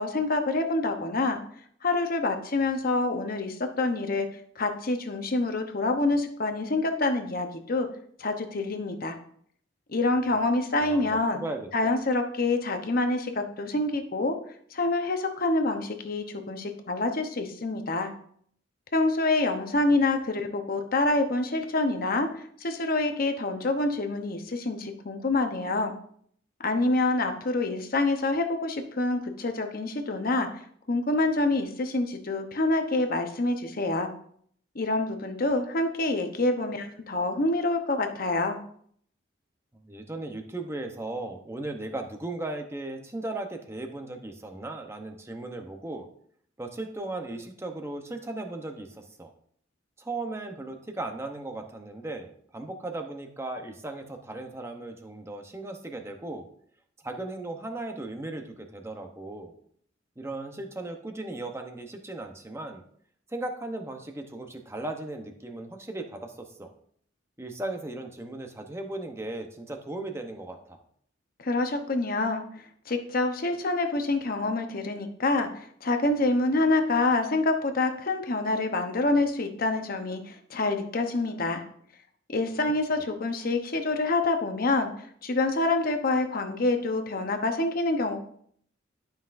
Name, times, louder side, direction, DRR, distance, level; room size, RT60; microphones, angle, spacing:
voice 1, 0.0-1.4 1.8-4.3 4.6-7.9 8.2-9.2 9.9-11.4 11.7-14.4 14.7-18.1 18.9-25.9 26.6-30.5 30.9-34.1 34.7-38.6 71.4-72.4 72.9-81.6 82.3-84.9 85.2-88.2, left 2 dB, 50° left, 5 dB, 0.9 m, -26 dB
voice 2, 10.8-11.9 39.8-46.1 46.6-49.3 50.0-56.5 57.0-59.5 60.2-62.8 63.3-66.7 67.4-70.8, right 2 dB, 15° right, 4 dB, 0.8 m, -37 dB
12.0 x 5.7 x 2.6 m, 0.63 s
head